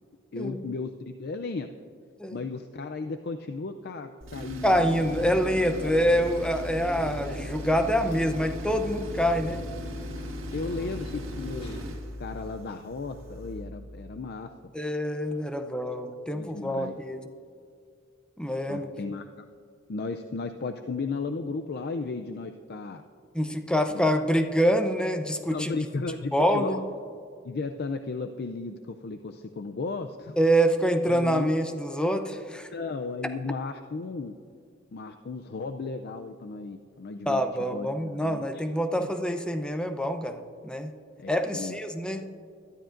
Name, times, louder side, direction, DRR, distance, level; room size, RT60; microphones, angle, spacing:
voice 1, 0.3-1.7 2.3-5.2 5.8-5.9 10.5-11.8 12.2-14.5 16.3-17.0 18.7-19.5 19.9-23.0 23.9-24.0 25.5-26.8 27.4-30.4 31.1-31.5 32.7-34.3 34.9-38.6 39.0-39.1 41.2-41.8, left 3 dB, 55° left, 7 dB, 0.5 m, -35 dB
Tools, 4.2-13.7, left 1 dB, 75° right, 1.8 m, -37 dB
voice 2, 4.6-9.6 14.7-17.3 18.4-18.9 23.3-25.7 26.3-26.8 30.4-32.7 37.3-40.9 41.3-42.2, equal, 5° left, 7 dB, 0.6 m, -26 dB
sound 1, 4.8-11.9, equal, 30° left, 2.3 m, -49 dB
21.0 x 12.5 x 2.6 m, 2.3 s
head